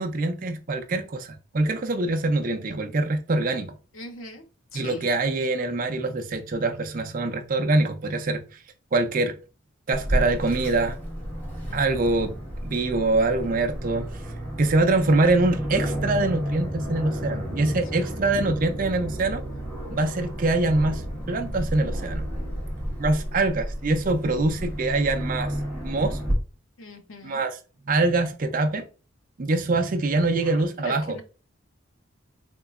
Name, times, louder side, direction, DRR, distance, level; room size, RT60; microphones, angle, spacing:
voice 1, 0.0-3.7 4.7-8.4 8.9-9.3 9.9-11.0 11.7-12.3 12.6-14.1 14.6-19.4 19.9-21.0 21.3-22.2 23.0-25.5 25.8-26.2 27.2-27.6 27.9-28.8 29.4-31.2, right 2 dB, 40° right, 0.4 m, -24 dB
voice 2, 3.9-4.4 4.7-5.1 11.7-12.2 18.0-18.1 26.8-27.4 30.4-31.2, left 1 dB, 75° left, 0.7 m, -41 dB
Aircraft, 9.9-26.3, equal, 10° left, 1.2 m, -31 dB
3.7 x 3.0 x 2.4 m
head